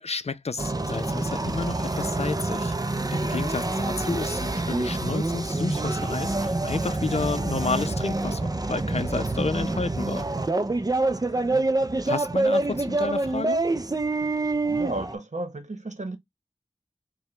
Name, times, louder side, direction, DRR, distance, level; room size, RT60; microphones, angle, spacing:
voice 1, 0.0-2.7 3.1-10.3 12.1-13.6, left 4 dB, 55° left, 0.4 m, -31 dB
sound 1, 0.6-15.1, right 2 dB, 30° right, 0.4 m, -26 dB
voice 2, 11.1-11.7 14.2-14.3 14.7-16.2, right 2 dB, 70° right, 0.9 m, -35 dB
4.8 x 2.2 x 3.2 m
wide cardioid pair, 50°, 13 cm